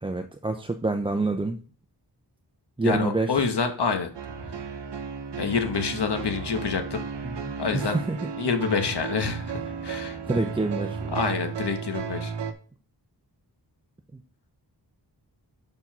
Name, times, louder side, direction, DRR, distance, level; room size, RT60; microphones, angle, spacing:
voice 1, 0.0-1.6 2.8-3.5 7.2-8.3 10.3-11.2 14.1-14.2, right 2 dB, 15° right, 5 dB, 0.5 m, -27 dB
voice 2, 2.8-4.1 5.4-7.0 7.6-8.0 8.4-9.5 9.8-10.2 11.1-12.3, left 5 dB, 75° left, 6 dB, 1.1 m, -27 dB
sound 1, 4.1-12.5, right 6 dB, 90° right, 0.8 m, -34 dB
5.4 x 4.6 x 6.0 m, 0.40 s
wide cardioid pair, 105°, 41 cm